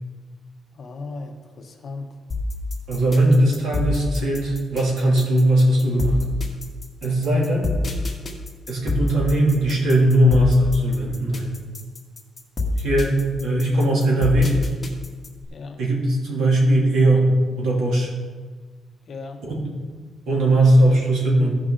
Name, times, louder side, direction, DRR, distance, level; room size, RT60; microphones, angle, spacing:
voice 1, 0.7-2.1 15.5-15.8 19.1-19.4, left 3 dB, 40° left, 3 dB, 1.1 m, -36 dB
sound 1, 2.3-15.4, left 2 dB, 20° left, 1.5 m, -27 dB
voice 2, 2.9-6.2 7.0-7.7 8.7-11.5 12.8-13.2 13.4-14.5 15.8-17.3 17.6-18.1 19.4-19.6 20.3-21.5, right 1 dB, 80° right, -3 dB, 2.7 m, -19 dB
15.0 x 5.5 x 3.8 m, 1.4 s
cardioid pair, 150°, 0 cm